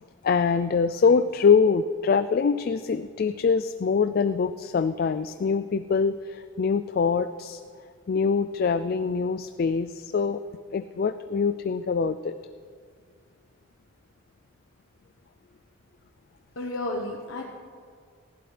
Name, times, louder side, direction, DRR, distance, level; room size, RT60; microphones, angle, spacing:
voice 1, 0.2-7.6 8.1-10.4 10.7-12.3, left 5 dB, 45° left, 12 dB, 0.3 m, -24 dB
voice 2, 16.6-17.4, left 2 dB, 80° left, 0 dB, 1.2 m, -32 dB
19.0 x 15.0 x 3.3 m, 2.1 s
head